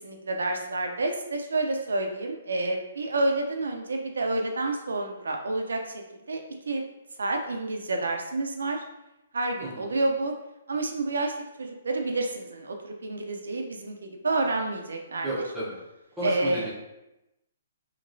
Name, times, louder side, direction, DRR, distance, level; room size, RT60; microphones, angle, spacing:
voice 1, 0.0-6.0 6.3-6.8 7.2-8.8 9.3-10.3 10.7-11.3 11.6-15.4 16.2-16.7, right 2 dB, 85° right, 3 dB, 0.5 m, -29 dB
voice 2, 9.6-9.9 15.2-15.8 16.2-16.7, right 1 dB, 10° right, -10 dB, 0.9 m, -32 dB
2.9 x 2.8 x 2.6 m, 0.92 s
hypercardioid pair, 145°, 0 cm